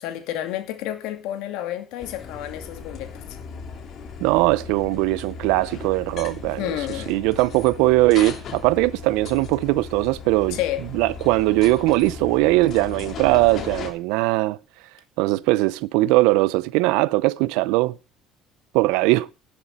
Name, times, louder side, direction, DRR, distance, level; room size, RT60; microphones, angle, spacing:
voice 1, 0.0-3.2 6.5-7.2 10.5-10.8, left 12 dB, 80° left, 2.4 m, -30 dB
sound 1, 2.0-13.9, left 6 dB, 50° left, 3.1 m, -37 dB
voice 2, 4.2-6.6 7.1-10.6 10.9-14.6 15.2-18.0 18.7-19.3, right 19 dB, 85° right, 0.5 m, -20 dB
11.5 x 6.9 x 7.4 m
cardioid pair, 110°, 0 cm